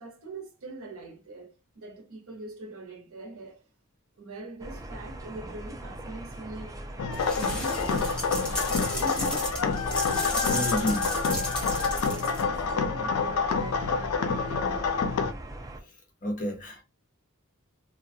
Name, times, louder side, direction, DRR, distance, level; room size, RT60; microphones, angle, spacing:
voice 1, 0.0-1.5 1.7-3.6 4.2-11.5 11.9-14.9, right 2 dB, 70° right, 0.7 m, -43 dB
sound 1, 4.6-15.8, right 1 dB, 15° right, 0.3 m, -41 dB
sound 2, 7.0-15.3, left 5 dB, 80° left, 0.4 m, -28 dB
sound 3, 7.1-12.7, equal, 5° left, 0.8 m, -34 dB
voice 2, 10.5-11.1 12.9-13.0 16.2-16.8, equal, 40° left, 0.9 m, -30 dB
2.3 x 2.2 x 2.6 m
head